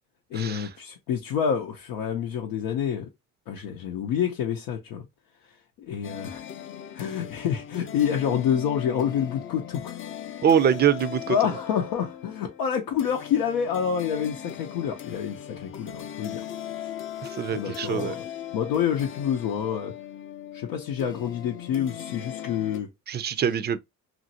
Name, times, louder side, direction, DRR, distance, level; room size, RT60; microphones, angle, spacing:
voice 1, 0.3-3.1 3.5-5.1 5.8-6.4 7.0-10.0 11.3-16.4 16.8-16.9 17.5-18.3 18.5-19.9 20.5-22.9 23.5-23.6, left 8 dB, 85° left, 0.6 m, -28 dB
sound 1, 6.0-22.8, left 10 dB, 35° left, 0.4 m, -39 dB
voice 2, 10.4-11.4 17.4-18.1 23.1-23.8, right 8 dB, 30° right, 0.3 m, -23 dB
2.9 x 2.5 x 2.7 m
cardioid pair, 95°, 36 cm